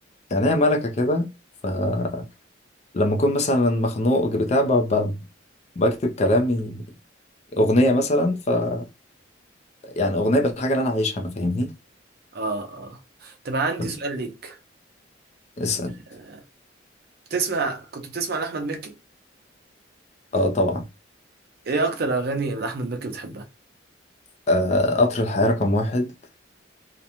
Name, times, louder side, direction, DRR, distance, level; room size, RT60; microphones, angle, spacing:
voice 1, 0.3-1.3 1.6-2.2 2.9-5.1 5.8-6.8 7.6-8.9 10.0-11.7 13.8-13.9 15.6-15.9 20.3-20.8 24.5-26.1, left 1 dB, 35° left, 0.5 m, -21 dB
voice 2, 12.3-14.6 16.1-16.4 17.3-18.9 21.7-23.4, right 3 dB, 55° right, 0.5 m, -28 dB
2.5 x 2.1 x 2.8 m
head